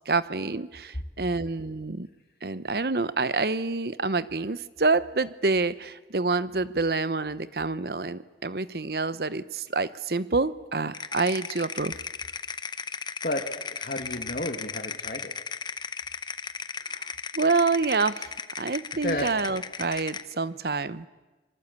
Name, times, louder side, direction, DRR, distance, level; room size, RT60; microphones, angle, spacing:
voice 1, 0.1-2.1 2.4-11.9 16.9-18.3 18.6-21.1, right 3 dB, 60° right, 15 dB, 0.9 m, -27 dB
sound 1, 10.9-20.3, left 5 dB, 25° left, 0.8 m, -36 dB
voice 2, 13.7-15.3 19.0-19.3, left 1 dB, 50° left, 3 dB, 2.1 m, -31 dB
26.5 x 23.5 x 8.4 m, 1.2 s
head